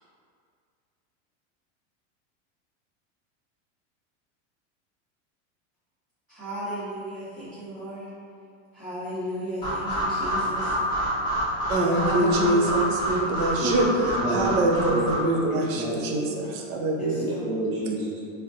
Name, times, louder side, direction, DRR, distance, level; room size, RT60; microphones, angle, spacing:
voice 1, 6.3-8.1 8.7-10.7 11.9-12.7 17.0-17.5, right 1 dB, 20° right, -14 dB, 0.8 m, -34 dB
sound 1, 9.6-15.1, equal, 15° left, 0.7 m, -27 dB
voice 2, 11.7-13.8 14.3-17.3, right 1 dB, 90° right, 0 dB, 0.7 m, -25 dB
voice 3, 13.6-16.3 17.2-18.2, right 2 dB, 55° right, -7 dB, 0.9 m, -30 dB
3.6 x 2.2 x 2.7 m, 2.4 s
supercardioid pair, 155°, 39 cm